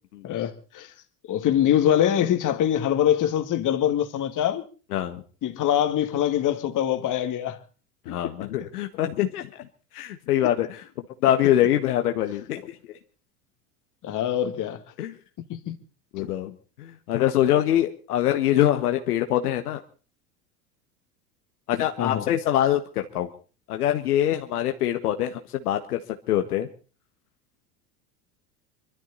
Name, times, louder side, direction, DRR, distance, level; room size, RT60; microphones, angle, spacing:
voice 1, 0.2-0.9 1.3-4.6 5.4-7.6 8.1-8.3 14.0-14.8 15.5-15.8 16.2-16.3 22.0-22.3, left 10 dB, 40° left, 2.3 m, -24 dB
voice 2, 4.9-5.2 8.1-9.7 9.9-10.8 11.2-12.7 15.0-15.1 16.1-19.8 21.7-23.3 23.7-25.4 25.6-26.0 26.3-26.7, left 12 dB, 75° left, 1.6 m, -24 dB
24.5 x 13.0 x 4.1 m
hypercardioid pair, 85°, 45 cm